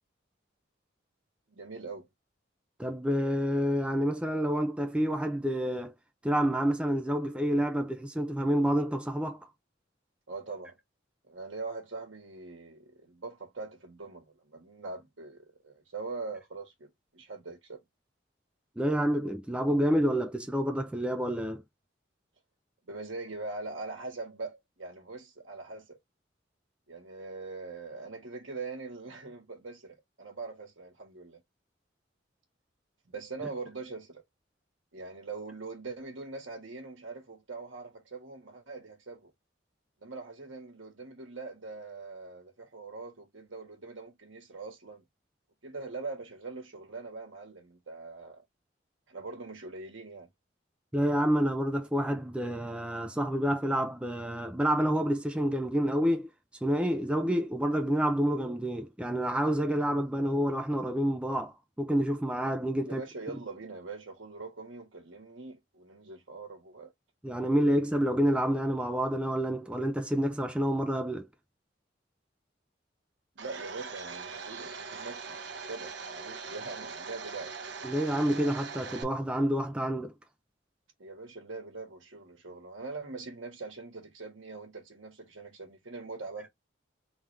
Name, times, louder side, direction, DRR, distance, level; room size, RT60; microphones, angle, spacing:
voice 1, 1.5-2.1 10.3-10.7 11.3-17.8 22.9-26.0 26.9-31.4 33.1-34.2 34.9-39.3 40.0-45.0 45.6-48.4 49.1-50.3 62.8-66.9 73.3-77.5 81.0-86.5, right 3 dB, 85° right, 1.4 m, -42 dB
voice 2, 2.8-5.9 6.2-9.4 18.8-21.6 50.9-56.3 56.6-63.0 67.2-71.3 77.8-80.1, equal, 5° right, 0.4 m, -28 dB
Domestic sounds home sounds, 73.4-79.0, right 5 dB, 65° right, 1.0 m, -41 dB
3.7 x 3.1 x 3.3 m
head